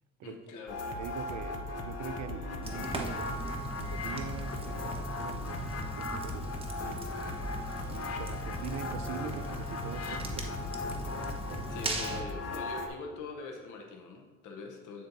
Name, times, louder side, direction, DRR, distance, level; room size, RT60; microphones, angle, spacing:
voice 1, 0.2-0.8 11.7-15.1, left 4 dB, 85° left, 2 dB, 1.0 m, -43 dB
sound 1, 0.7-12.9, left 3 dB, 55° left, 0.8 m, -38 dB
voice 2, 1.0-6.7 7.9-11.8, right 8 dB, 65° right, 11 dB, 0.6 m, -43 dB
Fire, 2.6-12.2, right 2 dB, 20° right, 1.1 m, -39 dB
9.0 x 4.3 x 4.0 m, 1.4 s
cardioid pair, 90°, 30 cm